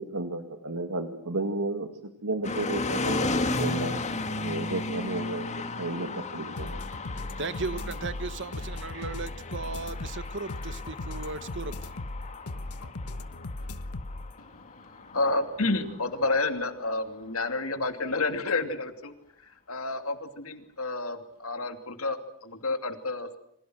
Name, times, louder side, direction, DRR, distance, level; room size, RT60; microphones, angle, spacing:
voice 1, 0.0-5.5 5.8-6.8 7.3-7.4, right 2 dB, 90° right, 6 dB, 2.2 m, -33 dB
sound 1, 2.4-16.5, left 2 dB, 30° left, 2.0 m, -35 dB
sound 2, 6.6-14.3, left 2 dB, 90° left, 1.3 m, -37 dB
voice 2, 7.4-11.9, right 4 dB, 55° right, 13 dB, 1.3 m, -36 dB
voice 3, 14.4-19.1 19.4-23.4, left 3 dB, 70° left, 7 dB, 2.7 m, -30 dB
28.5 x 26.0 x 6.3 m, 0.72 s
head